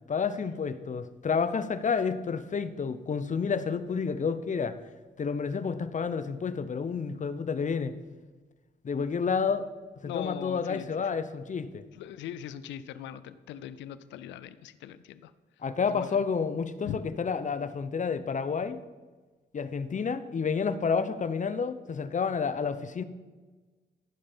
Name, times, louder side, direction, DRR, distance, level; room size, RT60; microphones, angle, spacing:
voice 1, 0.1-4.8 5.2-7.9 8.8-9.7 10.0-11.8 15.6-18.8 19.5-23.0, left 5 dB, 45° left, 12 dB, 0.8 m, -30 dB
voice 2, 10.0-11.1 11.9-15.3 15.9-16.2 16.9-17.0, left 11 dB, 90° left, 15 dB, 0.5 m, -40 dB
14.5 x 5.4 x 5.3 m, 1.3 s
supercardioid pair, 60°, 18 cm